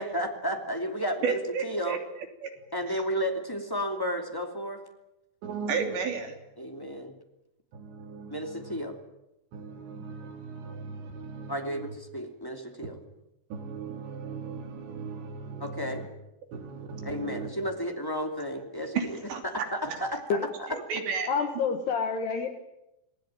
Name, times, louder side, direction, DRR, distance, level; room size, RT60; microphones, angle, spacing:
voice 1, 0.0-2.0 2.7-4.8 6.6-7.1 8.3-9.0 11.5-13.0 15.6-16.0 17.0-19.2 19.4-20.7, equal, 15° left, 3 dB, 0.7 m, -33 dB
voice 2, 1.2-2.0 2.4-2.5 5.4-6.3 6.6-7.0 7.7-8.8 9.5-11.9 13.5-16.1 16.5-17.5 18.9-19.4 19.9-20.0 20.7-21.3, right 5 dB, 60° right, 5 dB, 5.0 m, -35 dB
voice 3, 21.3-22.5, left 5 dB, 60° left, 6 dB, 3.3 m, -28 dB
28.5 x 20.5 x 9.0 m, 0.90 s
omnidirectional pair, 5.9 m